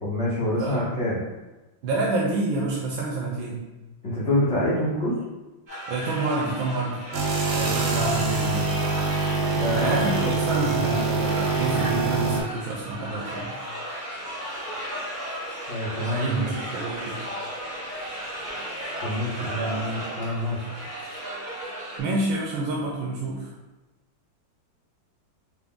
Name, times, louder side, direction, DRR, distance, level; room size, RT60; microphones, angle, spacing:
voice 1, 0.0-1.2 4.0-5.2 9.5-10.3 10.8-10.9 15.7-16.6 19.0-20.6, left 1 dB, 50° left, -8 dB, 0.9 m, -26 dB
voice 2, 0.6-0.9 1.8-3.6 5.9-7.0 7.5-8.7 9.7-13.5 16.1-17.2 19.5-19.8 22.0-23.5, right 2 dB, 90° right, -3 dB, 1.4 m, -28 dB
sound 1, 5.7-22.0, equal, 35° right, 0.7 m, -35 dB
sound 2, 7.1-12.4, right 4 dB, 65° right, 1.1 m, -25 dB
4.6 x 2.0 x 3.6 m, 1.1 s
omnidirectional pair, 2.2 m